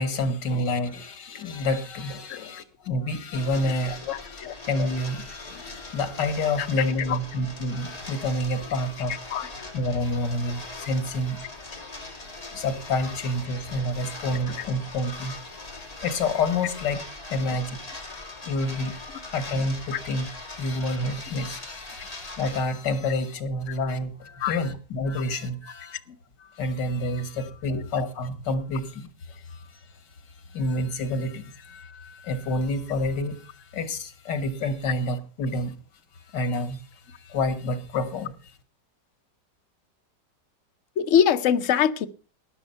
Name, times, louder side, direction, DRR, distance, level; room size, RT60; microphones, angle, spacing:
voice 1, 0.0-4.4 4.7-9.2 9.7-11.6 12.5-17.8 18.5-18.9 19.3-20.3 20.6-26.0 26.4-29.9 30.5-35.7 36.3-36.8 37.1-38.3, left 2 dB, 80° left, 2.1 m, -28 dB
sound 1, 3.3-22.6, left 2 dB, 20° left, 2.3 m, -41 dB
voice 2, 4.1-4.6 6.6-6.7 7.1-7.2 9.3-9.7 19.9-20.0 24.4-24.7 26.1-26.2 27.7-27.8 41.0-42.1, left 8 dB, 55° left, 0.9 m, -24 dB
12.5 x 9.9 x 5.6 m
omnidirectional pair, 1.9 m